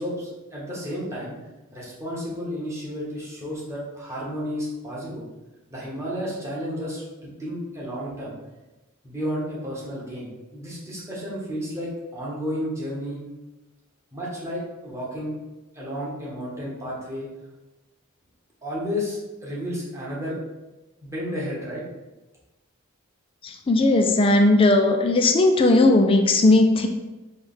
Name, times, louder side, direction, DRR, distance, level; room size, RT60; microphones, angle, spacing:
voice 1, 0.0-1.4 1.7-5.3 5.7-8.4 9.0-13.2 14.1-15.3 15.7-17.3 18.6-20.4 21.0-21.8, equal, 15° right, -6 dB, 1.1 m, -32 dB
voice 2, 23.4-26.9, left 2 dB, 25° left, 4 dB, 0.3 m, -17 dB
4.3 x 2.3 x 3.6 m, 1.1 s
head